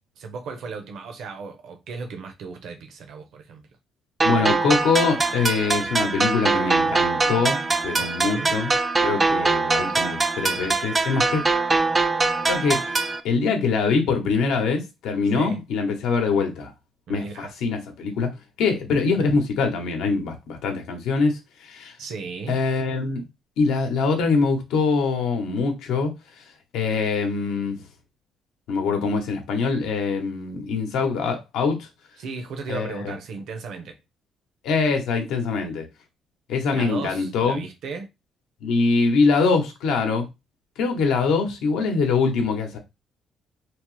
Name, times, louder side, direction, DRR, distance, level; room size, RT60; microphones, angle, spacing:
voice 1, 0.2-3.6 8.0-8.5 15.3-15.6 17.1-17.5 22.0-22.6 32.2-33.9 36.7-38.1, right 4 dB, 75° right, 0.7 m, -35 dB
voice 2, 4.2-8.7 9.0-11.4 12.5-16.7 17.1-18.3 18.6-21.9 22.5-23.2 23.6-26.1 26.4-26.5 26.7-27.8 28.7-31.9 32.7-33.1 34.6-35.9 36.5-37.6 38.6-40.3 40.8-42.8, left 4 dB, 85° left, 0.8 m, -23 dB
sound 1, 4.2-13.2, right 3 dB, 20° right, 0.3 m, -22 dB
3.0 x 2.0 x 3.0 m
cardioid pair, 115°, 0 cm